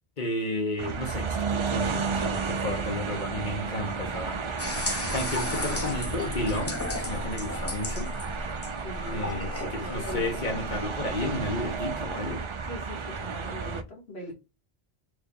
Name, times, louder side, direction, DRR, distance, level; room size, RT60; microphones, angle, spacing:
voice 1, 0.2-4.5 5.1-8.1 9.1-12.4, left 2 dB, 50° left, 1.2 m, -32 dB
sound 1, 0.8-13.8, right 5 dB, 50° right, 0.3 m, -33 dB
sound 2, 4.6-11.8, left 1 dB, 20° left, 0.5 m, -34 dB
voice 2, 8.8-10.4 12.7-14.3, equal, 75° left, 1.6 m, -40 dB
3.3 x 2.7 x 3.6 m
omnidirectional pair, 1.1 m